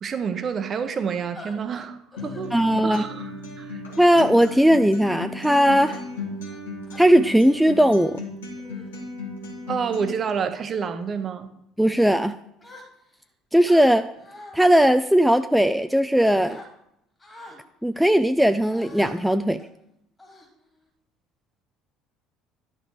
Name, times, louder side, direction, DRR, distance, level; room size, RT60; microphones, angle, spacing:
voice 1, 0.0-3.3 3.6-3.8 9.7-11.5, right 6 dB, 35° right, 10 dB, 0.8 m, -29 dB
sound 1, 1.3-1.5 2.1-2.4 3.0-3.3 4.4-4.8 5.4-5.7 6.4-7.0 7.8-8.1 8.6-8.9 9.4-9.7 10.2-10.5 11.0-11.3 12.6-13.2 13.6-14.6 15.2-16.0 16.3-16.7 17.2-17.6 18.6-19.1 19.6-19.8 20.2-20.9, left 1 dB, 15° left, 2.9 m, -46 dB
Acoustic guitar, 2.2-10.2, left 2 dB, 70° left, 1.8 m, -35 dB
voice 2, 2.5-3.0 4.0-6.0 7.0-8.2 11.8-12.4 13.5-14.1 14.5-16.6 17.8-19.6, equal, ahead, 9 dB, 0.3 m, -18 dB
11.0 x 5.0 x 4.6 m, 0.78 s
figure-of-eight pair, 60°, 0 cm